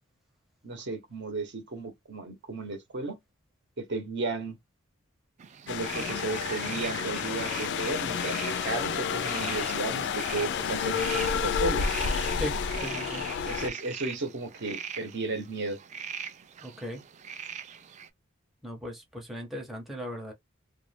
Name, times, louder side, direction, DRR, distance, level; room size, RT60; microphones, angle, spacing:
voice 1, 0.6-3.2 3.8-4.6 5.7-11.9 13.4-15.8, right 3 dB, 55° right, 0.8 m, -34 dB
sound 1, 5.4-18.1, right 7 dB, 35° right, 0.3 m, -41 dB
sound 2, 5.7-13.7, left 6 dB, 55° left, 0.3 m, -30 dB
voice 2, 5.9-6.2 12.4-13.2 16.6-17.0 18.6-20.3, left 1 dB, ahead, 0.6 m, -38 dB
2.4 x 2.2 x 3.2 m
head